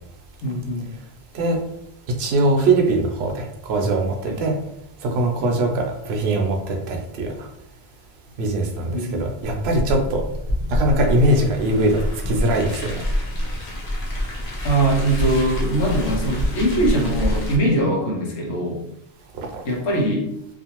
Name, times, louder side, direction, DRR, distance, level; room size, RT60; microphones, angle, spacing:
voice 1, 0.4-0.9 4.3-4.4 5.4-5.7 8.9-9.3 14.6-18.8 19.6-20.3, right 1 dB, 90° left, -1 dB, 1.1 m, -22 dB
voice 2, 2.2-4.6 5.0-7.3 8.4-10.2 10.7-13.0 19.4-19.6, right 2 dB, 75° right, 2 dB, 0.8 m, -21 dB
Car, 9.4-17.6, equal, 45° left, 0.6 m, -26 dB
2.5 x 2.4 x 2.9 m, 0.79 s
omnidirectional pair, 1.1 m